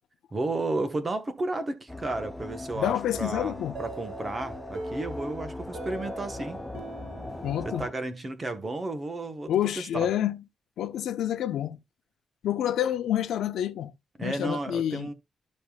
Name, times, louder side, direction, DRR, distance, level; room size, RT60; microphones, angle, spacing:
voice 1, 0.3-6.6 7.6-10.1 14.2-15.1, right 2 dB, 20° right, 1.1 m, -33 dB
sound 1, 1.9-7.9, left 2 dB, 5° left, 0.5 m, -39 dB
voice 2, 2.8-3.7 7.4-7.9 9.5-10.4 10.8-11.8 12.4-13.9 14.2-15.1, left 11 dB, 80° left, 0.8 m, -28 dB
sound 2, 3.7-8.4, right 3 dB, 85° right, 2.3 m, -43 dB
13.5 x 5.3 x 2.3 m
wide cardioid pair, 175°, 0 cm